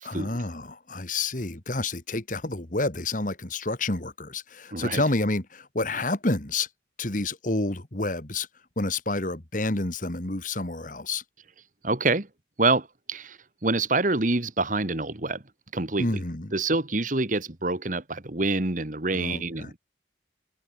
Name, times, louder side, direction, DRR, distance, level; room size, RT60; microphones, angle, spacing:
voice 1, 0.0-6.7 7.0-8.5 8.8-11.2 16.0-16.5 19.1-19.7, left 2 dB, 45° left, 2.0 m, -29 dB
voice 2, 4.7-5.0 11.8-12.3 12.6-15.4 15.7-16.2 16.5-19.8, right 3 dB, 45° right, 1.6 m, -26 dB
open air
head